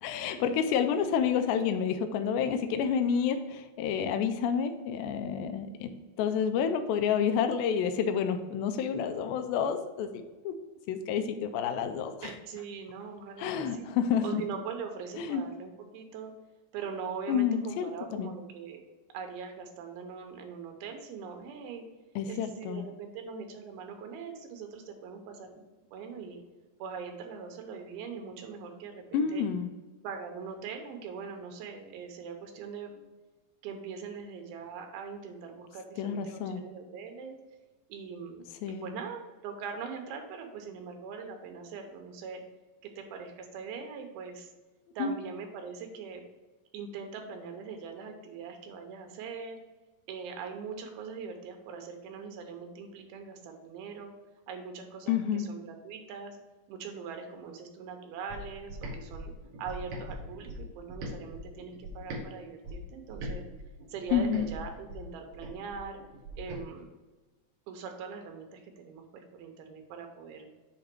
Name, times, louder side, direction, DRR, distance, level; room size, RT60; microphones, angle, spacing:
voice 1, 0.0-5.9 6.2-10.6 10.9-12.3 13.4-14.4 15.2-15.4 17.3-18.3 22.2-22.9 29.1-29.7 36.0-36.6 38.6-38.9 45.0-45.1 55.1-55.5 64.1-64.5, left 7 dB, 85° left, 7 dB, 2.3 m, -29 dB
voice 2, 12.2-14.0 14.2-16.3 16.7-18.8 19.1-21.9 22.3-25.6 25.9-26.4 26.8-29.4 30.0-33.0 33.6-37.4 37.9-42.4 42.8-44.5 45.0-46.2 46.7-49.6 50.1-54.1 54.5-56.4 56.7-59.3 59.6-63.5 63.9-66.0 66.4-66.9 67.7-70.5, right 5 dB, 90° right, 4 dB, 2.8 m, -42 dB
sound 1, 58.3-62.3 62.6-66.6, equal, 70° right, 1.7 m, -41 dB
7.0 x 2.9 x 5.9 m, 1.2 s
omnidirectional pair, 4.3 m